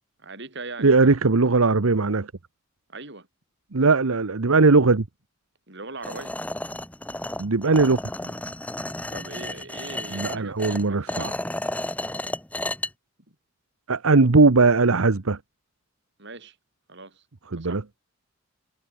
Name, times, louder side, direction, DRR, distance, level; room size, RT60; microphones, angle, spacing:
voice 1, 0.2-1.0 2.9-3.3 5.7-6.4 8.2-8.5 9.1-11.4 13.3-13.4 16.2-16.6 16.9-17.2 17.6-17.8, right 3 dB, 55° right, 8.0 m, -40 dB
voice 2, 0.8-2.3 3.7-5.0 7.4-8.0 10.1-11.3 13.9-15.4 17.5-17.8, right 3 dB, 85° right, 1.0 m, -19 dB
sound 1, 6.0-12.9, left 1 dB, 5° left, 1.1 m, -32 dB
head